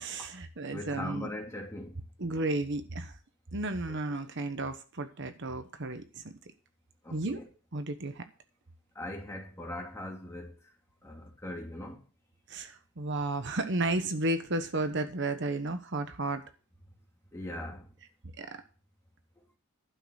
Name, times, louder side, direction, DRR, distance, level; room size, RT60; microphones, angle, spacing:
voice 1, 0.0-1.3 2.2-3.1 3.5-6.3 7.1-7.4 7.7-8.2 12.5-16.4 18.4-18.6, right 2 dB, 55° right, 1.1 m, -33 dB
voice 2, 0.7-2.0 3.9-4.0 7.0-7.5 8.9-10.6 11.0-12.0 17.3-17.9, left 1 dB, 15° left, 2.8 m, -40 dB
12.0 x 6.5 x 6.4 m
head